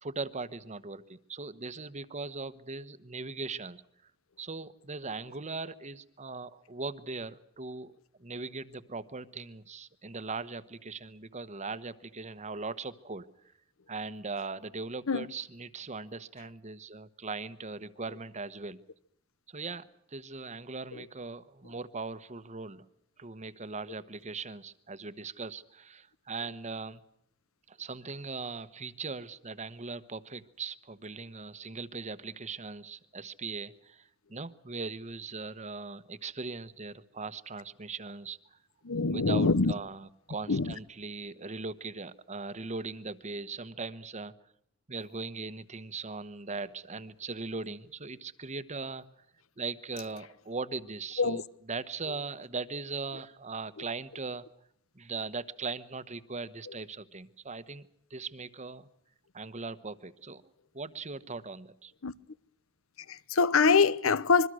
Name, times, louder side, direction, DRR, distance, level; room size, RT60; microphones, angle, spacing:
voice 1, 0.0-3.8 4.4-7.9 8.2-13.3 13.9-18.8 19.5-22.8 23.2-27.0 27.7-38.6 39.1-44.3 44.9-49.0 49.6-54.4 54.9-58.9 59.3-60.4 60.7-61.9, right 4 dB, 35° right, 1.2 m, -39 dB
voice 2, 38.8-39.7 40.5-40.7 51.2-51.4 62.0-62.1 63.1-64.5, left 4 dB, 80° left, 0.9 m, -24 dB
26.0 x 23.0 x 6.4 m
head